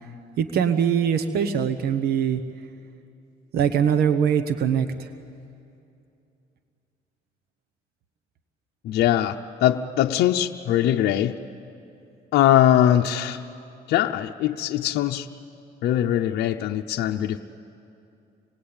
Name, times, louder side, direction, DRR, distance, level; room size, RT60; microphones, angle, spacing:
voice 1, 0.4-2.4 3.5-5.1, right 8 dB, 65° right, 9 dB, 1.1 m, -22 dB
voice 2, 8.8-11.3 12.3-13.4 13.9-15.3 15.8-17.4, left 12 dB, 75° left, 4 dB, 0.7 m, -21 dB
27.0 x 20.0 x 8.8 m, 2.6 s
cardioid pair, 110°, 17 cm